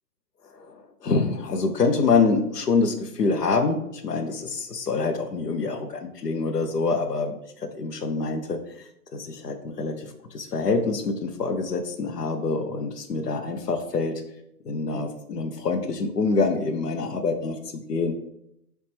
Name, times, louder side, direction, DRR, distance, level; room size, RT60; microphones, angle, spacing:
voice 1, 0.5-8.8 9.1-14.2 14.6-18.1, left 4 dB, 80° left, 7 dB, 0.7 m, -26 dB
4.1 x 3.2 x 3.3 m, 0.79 s
figure-of-eight pair, 120°, 48 cm